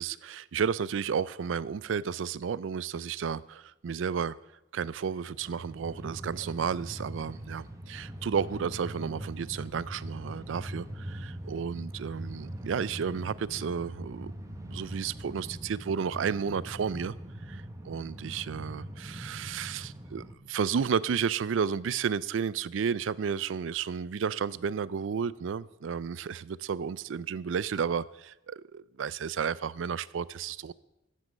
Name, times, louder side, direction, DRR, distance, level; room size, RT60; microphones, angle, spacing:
voice 1, 0.0-4.3 4.7-17.1 17.5-30.7, right 6 dB, 90° right, 0.4 m, -32 dB
Train, 5.2-20.3, right 1 dB, 15° right, 1.0 m, -42 dB
9.3 x 7.6 x 7.4 m
head